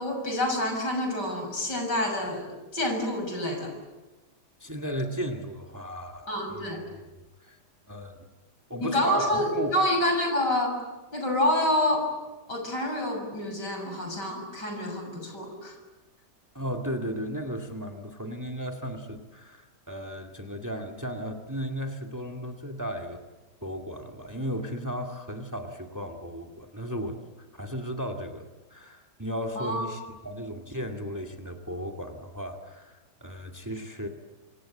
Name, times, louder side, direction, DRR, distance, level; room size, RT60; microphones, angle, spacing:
voice 1, 0.0-3.7 6.3-6.8 8.8-10.8 11.1-12.1 12.5-15.7 29.6-29.9, left 1 dB, 75° left, 4 dB, 7.1 m, -27 dB
voice 2, 4.6-6.7 7.4-7.6 7.9-8.3 8.7-9.7 16.5-23.2 23.6-27.2 27.5-34.1, equal, 10° right, 4 dB, 2.1 m, -35 dB
26.0 x 26.0 x 8.8 m, 1.1 s
omnidirectional pair, 1.9 m